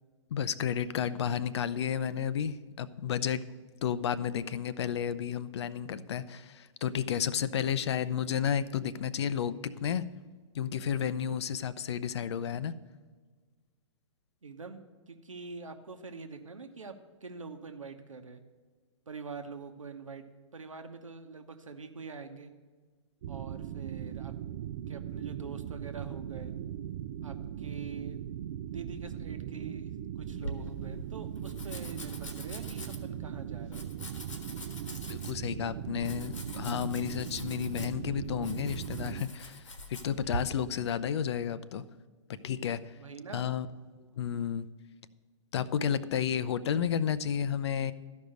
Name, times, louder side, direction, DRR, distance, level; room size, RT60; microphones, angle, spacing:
voice 1, 0.3-3.4 3.8-10.0 10.5-12.7 35.1-41.8 42.4-42.9 43.3-44.7 45.5-47.9, left 8 dB, 60° left, 15 dB, 0.5 m, -32 dB
voice 2, 14.4-14.8 15.1-16.9 17.2-18.4 19.1-20.2 20.5-22.5 23.3-24.3 24.9-26.5 27.2-28.2 28.7-33.9 43.0-43.5, right 4 dB, 85° right, 7 dB, 1.0 m, -44 dB
sound 1, 23.2-39.2, right 10 dB, 50° right, 0.4 m, -39 dB
Domestic sounds home sounds, 30.2-40.4, equal, 80° left, 1.6 m, -44 dB
13.0 x 5.3 x 6.4 m, 1.5 s
figure-of-eight pair, 120°, 16 cm